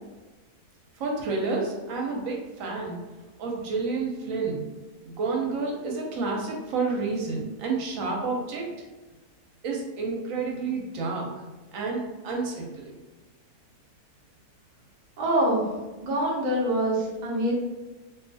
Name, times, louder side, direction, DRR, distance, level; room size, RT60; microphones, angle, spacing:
voice 1, 1.0-3.0 3.4-4.6 5.1-8.8 9.6-11.3 11.7-12.9, right 4 dB, 70° right, -1 dB, 0.9 m, -30 dB
voice 2, 15.2-15.7 16.0-17.5, right 1 dB, 90° right, -3 dB, 0.4 m, -25 dB
2.6 x 2.3 x 2.5 m, 1.2 s
omnidirectional pair, 1.6 m